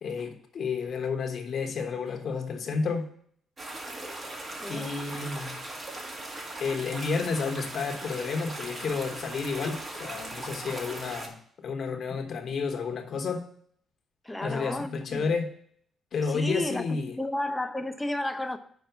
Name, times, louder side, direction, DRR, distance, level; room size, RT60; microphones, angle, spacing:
voice 1, 0.0-3.1 4.7-5.6 6.6-13.4 14.4-15.5 16.1-17.1, left 5 dB, 60° left, 1.1 m, -31 dB
sound 1, 3.6-11.3, right 1 dB, 35° right, 1.8 m, -39 dB
voice 2, 4.6-5.0 12.1-12.2 14.2-15.3 16.2-18.6, left 1 dB, 10° left, 0.7 m, -33 dB
5.9 x 4.9 x 6.7 m
cardioid pair, 90°, 0 cm